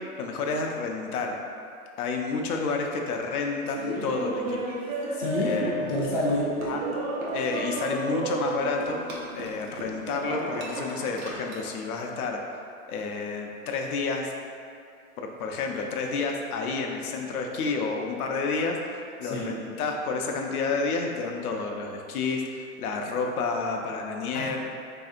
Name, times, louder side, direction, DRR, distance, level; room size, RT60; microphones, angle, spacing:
voice 1, 0.2-1.3 2.0-4.6 5.4-5.9 6.6-6.8 7.3-9.0 9.3-12.4 12.9-14.3 15.2-18.8 19.2-24.6, left 4 dB, 85° left, 2 dB, 0.5 m, -30 dB
Laughter, 3.7-11.8, right 2 dB, 65° right, 0.8 m, -33 dB
voice 2, 5.1-6.6 19.2-19.5 24.3-24.6, left 1 dB, 40° left, -6 dB, 0.4 m, -28 dB
3.4 x 2.7 x 2.4 m, 2.4 s
supercardioid pair, 175°, 44 cm